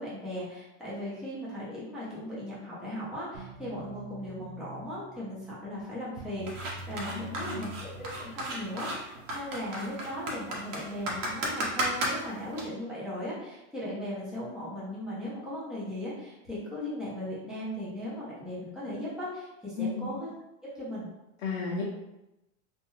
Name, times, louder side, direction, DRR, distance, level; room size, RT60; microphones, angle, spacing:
voice 1, 0.0-20.3 20.7-21.1, left 1 dB, ahead, -9 dB, 0.7 m, -37 dB
sound 1, 3.3-8.9, right 3 dB, 65° right, 0.6 m, -46 dB
sound 2, 6.5-12.6, right 1 dB, 80° right, 1.0 m, -34 dB
voice 2, 7.1-7.7 19.8-20.1 21.4-21.8, left 4 dB, 55° left, -4 dB, 0.6 m, -33 dB
2.5 x 2.2 x 3.0 m, 0.93 s
supercardioid pair, 150°, 37 cm